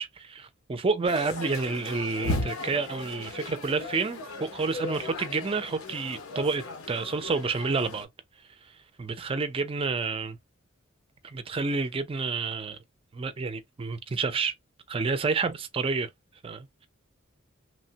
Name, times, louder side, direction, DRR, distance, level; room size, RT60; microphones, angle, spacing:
voice 1, 0.0-8.1 8.6-8.7 9.0-10.4 11.2-12.8 13.1-14.5 14.9-16.1 16.4-16.9, right 4 dB, 25° right, 0.4 m, -29 dB
sound 1, 1.0-8.0, left 2 dB, 90° left, 0.7 m, -36 dB
3.2 x 2.1 x 2.7 m
head